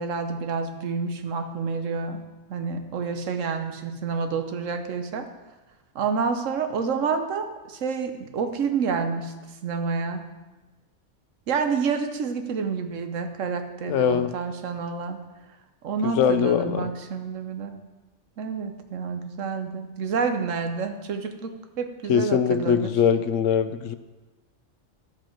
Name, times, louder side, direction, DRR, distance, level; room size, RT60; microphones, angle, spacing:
voice 1, 0.0-2.2 2.5-5.3 5.9-9.3 9.6-10.2 11.5-15.2 15.8-17.8 18.4-22.9, right 5 dB, 90° right, 7 dB, 1.2 m, -28 dB
voice 2, 13.8-14.3 16.0-16.9 22.1-23.9, left 8 dB, 85° left, 12 dB, 1.0 m, -22 dB
10.5 x 7.9 x 4.4 m, 1.2 s
omnidirectional pair, 1.3 m